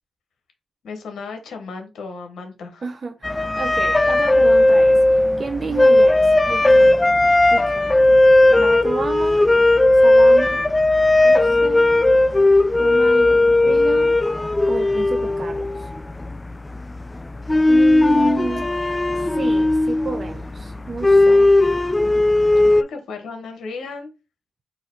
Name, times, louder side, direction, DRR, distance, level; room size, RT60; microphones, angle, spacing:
voice 1, 0.8-2.8 22.5-24.1, left 4 dB, 80° left, 0.9 m, -35 dB
voice 2, 2.8-7.1 7.5-8.0 8.6-9.4 9.9-10.6 11.2-12.1 12.8-14.2 14.6-15.9 17.6-18.7 19.3-21.5, right 4 dB, 55° right, 0.5 m, -31 dB
sound 1, 3.2-22.8, left 2 dB, 25° left, 0.3 m, -16 dB
3.9 x 2.6 x 4.3 m
supercardioid pair, 45°, 0 cm